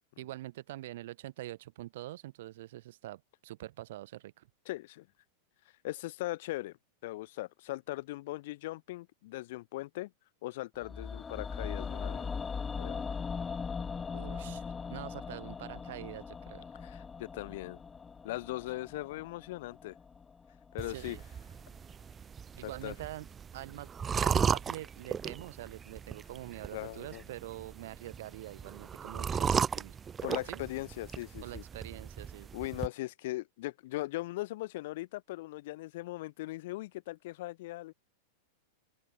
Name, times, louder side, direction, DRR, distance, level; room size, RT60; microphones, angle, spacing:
voice 1, 0.2-4.5 14.1-14.6 14.9-16.6 20.9-21.2 22.6-23.3 23.5-23.9 24.2-30.0 30.5-30.6 31.4-32.5, right 15 dB, 55° right, 1.3 m, -45 dB
voice 2, 4.7-5.1 5.8-6.8 7.0-10.1 10.4-12.3 12.8-13.1 16.8-17.8 18.2-20.0 20.7-21.2 22.6-22.9 26.7-27.2 30.2-31.6 32.5-37.9, left 18 dB, 50° left, 0.9 m, -39 dB
sound 1, 10.8-20.9 21.2-21.3, left 5 dB, 15° left, 0.9 m, -40 dB
sound 2, 20.8-32.9, right 7 dB, 20° right, 0.4 m, -36 dB
open air
figure-of-eight pair, 90°, 0 cm